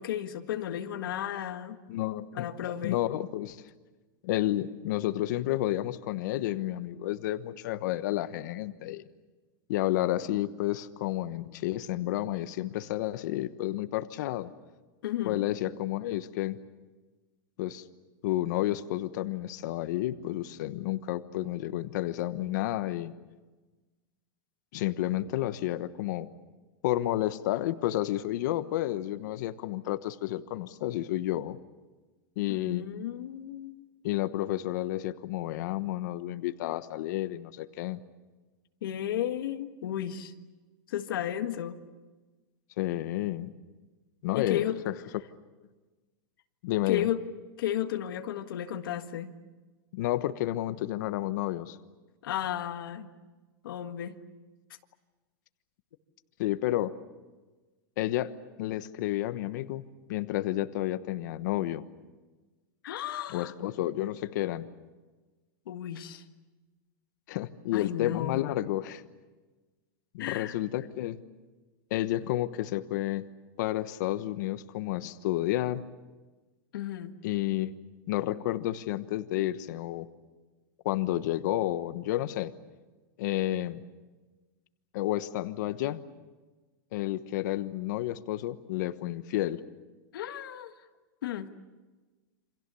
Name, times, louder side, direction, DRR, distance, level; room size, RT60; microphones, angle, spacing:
voice 1, 0.0-1.8 2.3-3.0 15.0-15.4 32.5-33.8 38.8-40.3 40.9-41.8 44.3-44.8 46.9-47.2 47.6-49.3 52.2-53.1 53.6-54.2 62.8-63.5 65.7-66.2 67.7-68.4 70.2-70.6 76.7-77.2 90.1-90.7 91.2-91.5, left 11 dB, 80° left, 7 dB, 1.7 m, -33 dB
voice 2, 1.9-2.5 2.8-3.6 4.2-9.0 9.7-14.5 15.2-16.6 17.6-17.8 18.2-23.1 24.7-26.3 26.8-31.6 32.4-32.8 34.0-38.0 42.8-43.5 44.2-45.2 46.6-47.1 49.9-51.8 56.4-56.9 58.0-58.3 58.6-61.8 63.3-64.7 67.3-69.0 70.1-71.2 71.9-73.3 73.6-75.8 77.2-77.7 78.1-80.1 80.8-82.5 83.2-83.9 84.9-86.0 86.9-89.6, left 14 dB, 55° left, 12 dB, 1.1 m, -31 dB
28.5 x 26.0 x 7.0 m, 1.2 s
supercardioid pair, 160°, 11 cm